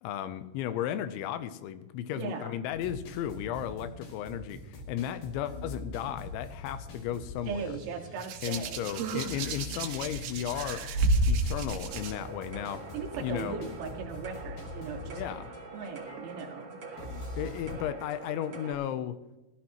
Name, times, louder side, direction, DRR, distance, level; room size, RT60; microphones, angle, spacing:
voice 1, 0.0-7.8 8.4-10.8 11.3-12.8 13.2-13.6 15.1-15.5 17.4-19.2, left 10 dB, 85° left, 11 dB, 3.1 m, -35 dB
voice 2, 2.2-2.6 7.5-8.9 12.9-15.2 15.7-16.8, right 5 dB, 85° right, 1 dB, 4.1 m, -38 dB
sound 1, 2.7-17.7, left 2 dB, 60° left, 3.9 m, -44 dB
Hands, 8.2-12.1 13.2-13.4, right 2 dB, 70° right, 2.9 m, -30 dB
sound 2, 11.9-18.7, right 4 dB, 45° right, 2.0 m, -45 dB
20.5 x 12.5 x 3.0 m, 1.1 s
omnidirectional pair, 5.2 m